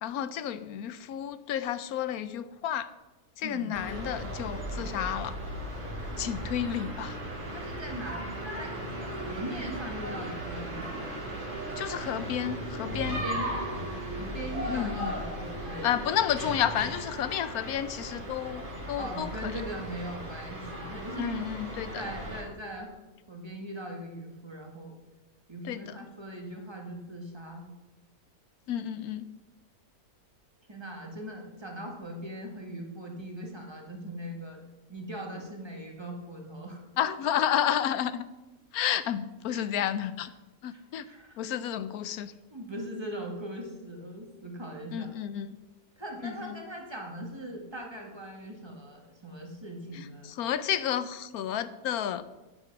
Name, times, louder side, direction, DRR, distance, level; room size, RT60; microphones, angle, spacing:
voice 1, 0.0-2.9 3.4-5.4 6.2-7.2 11.8-13.2 14.7-15.2 15.8-19.5 21.2-22.1 25.6-26.1 28.7-29.3 37.0-38.2 38.7-40.3 40.6-41.0 41.4-42.3 44.9-45.6 46.2-46.5 49.9-52.2, left 10 dB, 85° left, 14 dB, 1.1 m, -31 dB
voice 2, 3.4-3.7 7.5-8.2 8.6-11.1 13.1-13.5 14.1-15.9 19.0-21.4 21.9-22.9 23.3-24.9 25.5-27.7 30.7-34.6 34.9-36.8 39.5-39.6 40.2-40.3 40.7-41.4 42.5-45.1 46.0-50.3, equal, 20° right, 1 dB, 1.9 m, -40 dB
sound 1, 3.7-22.4, right 1 dB, 35° right, 2.7 m, -37 dB
9.8 x 8.6 x 6.1 m, 1.1 s
omnidirectional pair, 1.6 m